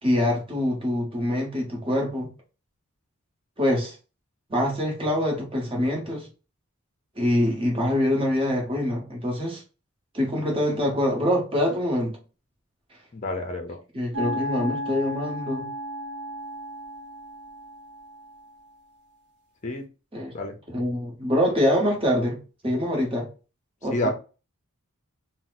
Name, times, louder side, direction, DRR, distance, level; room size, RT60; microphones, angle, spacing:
voice 1, 0.0-2.3 3.6-3.9 4.5-6.3 7.2-9.6 10.1-12.2 13.9-15.7 20.1-20.3 20.7-22.4 22.6-23.3 23.8-24.1, left 1 dB, 25° right, 1.0 m, -25 dB
voice 2, 13.1-13.8 19.6-19.9 20.3-20.5 23.9-24.1, left 1 dB, 35° left, 0.6 m, -28 dB
sound 1, 14.1-18.4, equal, 50° right, 0.5 m, -34 dB
2.7 x 2.1 x 4.0 m
head